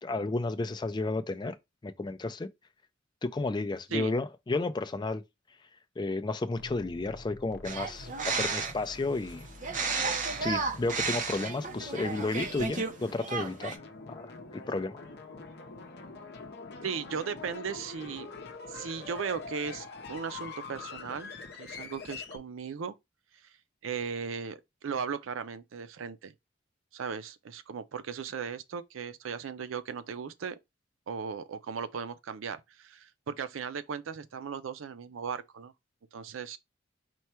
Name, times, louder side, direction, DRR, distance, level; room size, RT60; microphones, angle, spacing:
voice 1, 0.0-1.6 1.8-2.5 3.2-5.2 6.0-9.4 10.4-13.8 14.1-15.0, left 2 dB, 20° left, 0.4 m, -32 dB
sound 1, 6.5-22.4, left 3 dB, 55° left, 0.7 m, -45 dB
sound 2, 7.6-8.9 9.6-12.9 13.2-13.8, right 4 dB, 40° right, 0.7 m, -32 dB
voice 2, 16.8-18.3 18.7-21.3 21.6-22.9 23.8-26.3 26.9-30.6 31.1-35.7 36.1-36.6, right 6 dB, 80° right, 0.4 m, -37 dB
4.5 x 2.2 x 4.2 m
head